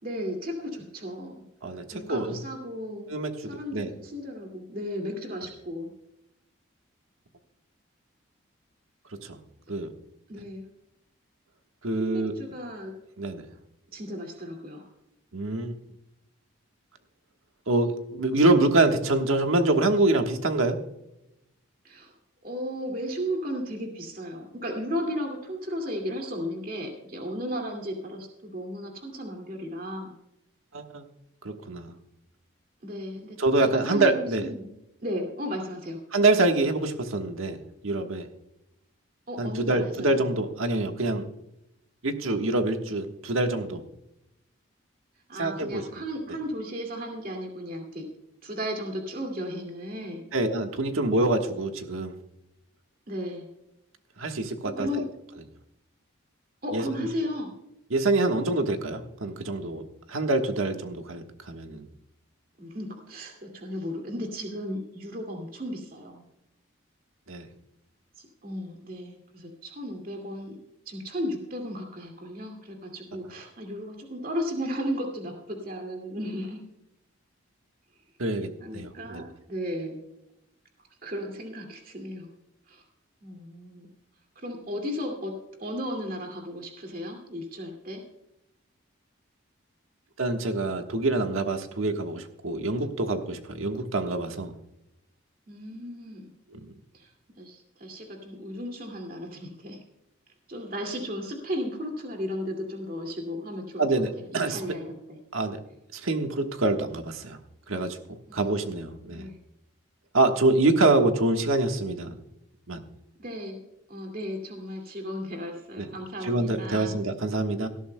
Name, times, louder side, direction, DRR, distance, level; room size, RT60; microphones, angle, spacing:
voice 1, 0.0-1.4 1.9-3.1 3.4-5.9 10.3-10.7 12.0-12.9 13.9-14.9 21.8-22.1 22.4-30.1 32.8-34.7 35.0-36.0 39.3-40.2 45.3-48.1 48.4-50.2 53.1-53.5 54.6-55.0 56.6-57.5 62.6-66.2 68.2-70.6 70.9-76.6 78.6-80.0 81.0-82.3 82.7-82.8 83.2-83.9 84.4-85.3 85.6-88.0 95.5-96.3 96.9-99.8 100.5-103.8 104.5-105.2 108.3-108.6 109.1-109.4 113.2-113.6 113.9-117.0, equal, 45° right, 3 dB, 2.3 m, -35 dB
voice 2, 1.6-2.4 3.1-3.3 3.7-3.9 9.3-9.4 9.7-9.9 11.8-12.3 13.2-13.4 15.3-15.8 17.7-20.8 30.7-31.0 31.4-31.9 33.4-34.5 36.1-37.6 37.8-38.2 39.4-41.3 42.0-43.8 45.4-45.8 50.3-52.2 54.2-54.9 56.7-56.8 57.9-59.8 60.1-61.9 67.3-67.5 78.2-79.2 90.2-94.5 96.5-96.6 103.8-104.6 105.3-105.6 105.9-107.4 107.7-108.0 108.3-109.3 110.1-112.1 112.7-112.8 115.8-115.9 116.2-117.7, right 2 dB, 80° right, 5 dB, 1.4 m, -25 dB
18.0 x 13.0 x 2.2 m, 0.86 s
head